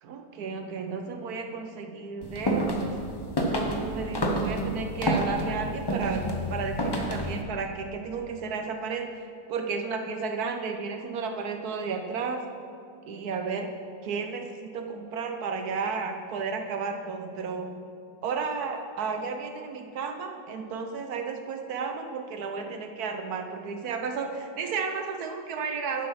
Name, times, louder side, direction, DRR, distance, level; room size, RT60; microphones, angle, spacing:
voice 1, 0.0-3.0 3.4-6.2 6.5-9.1 9.5-12.4 13.1-13.7 14.0-17.7 18.2-24.3 24.6-26.1, right 5 dB, 65° right, 4 dB, 1.1 m, -33 dB
sound 1, 2.2-7.4, right 1 dB, 35° left, 0.4 m, -29 dB
9.7 x 6.4 x 5.6 m, 2.3 s
omnidirectional pair, 1.9 m